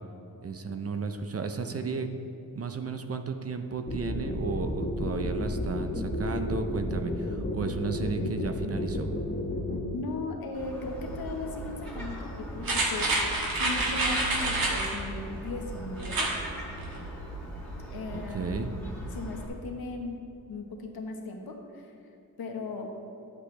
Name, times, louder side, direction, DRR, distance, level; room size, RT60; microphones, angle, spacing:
voice 1, 0.4-2.1 2.5-9.1 18.1-18.7, right 4 dB, 40° right, 7 dB, 0.5 m, -33 dB
sound 1, 3.9-9.8, left 1 dB, 25° left, 1.0 m, -31 dB
voice 2, 9.9-13.1 13.6-16.3 17.9-18.8 19.1-20.2 20.5-21.9 22.4-22.9, left 3 dB, 70° left, 2 dB, 1.2 m, -37 dB
Gull seagull, 10.5-19.5, right 1 dB, 5° left, 1.7 m, -39 dB
sound 2, 12.6-15.0 16.0-16.4 16.8-16.9, right 2 dB, 65° right, 1.5 m, -28 dB
10.0 x 8.1 x 3.2 m, 2.8 s
wide cardioid pair, 130°, 38 cm